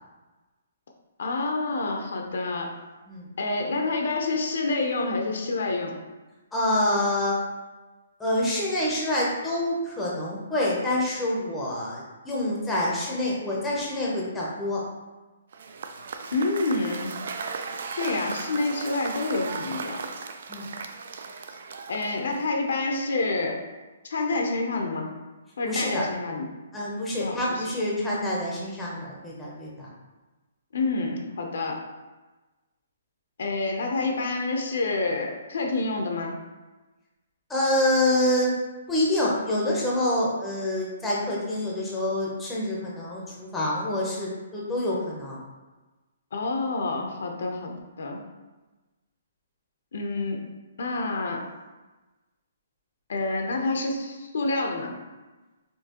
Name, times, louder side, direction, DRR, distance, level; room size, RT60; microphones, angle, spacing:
voice 1, 1.2-2.7 3.4-6.0 16.3-17.1 17.9-20.0 21.9-23.6 24.0-25.1 25.6-26.5 27.2-27.7 30.7-31.8 33.4-36.4 46.3-48.2 49.9-50.4 50.8-51.4 53.1-54.9, left 3 dB, 65° left, 2 dB, 0.7 m, -28 dB
voice 2, 6.5-7.3 8.2-14.8 20.5-20.7 25.7-26.0 26.7-29.9 37.5-38.5 38.9-45.4, left 1 dB, 5° left, -5 dB, 0.7 m, -26 dB
Cheering / Applause / Crowd, 15.5-22.6, right 5 dB, 55° right, 0.3 m, -36 dB
4.5 x 2.7 x 2.9 m, 1.2 s
hypercardioid pair, 165°, 0 cm